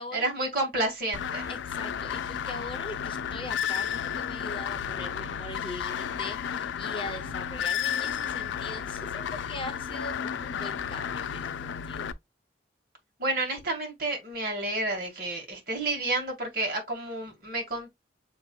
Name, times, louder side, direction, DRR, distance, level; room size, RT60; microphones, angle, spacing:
voice 1, 0.1-1.5 13.2-17.9, right 2 dB, 55° right, 1.9 m, -30 dB
sound 1, 1.1-12.1, left 8 dB, 85° left, 0.4 m, -32 dB
voice 2, 1.5-12.1, left 2 dB, 30° left, 0.6 m, -41 dB
7.2 x 2.9 x 2.3 m
head